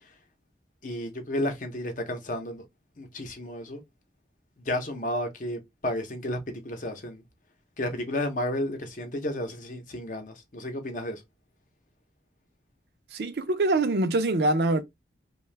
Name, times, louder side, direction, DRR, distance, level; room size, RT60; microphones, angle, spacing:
voice 1, 0.8-2.6 3.0-3.8 4.6-7.2 7.8-11.2, left 1 dB, 45° left, 0.7 m, -32 dB
voice 2, 13.1-14.8, right 2 dB, 65° right, 0.5 m, -24 dB
2.6 x 2.2 x 3.2 m
head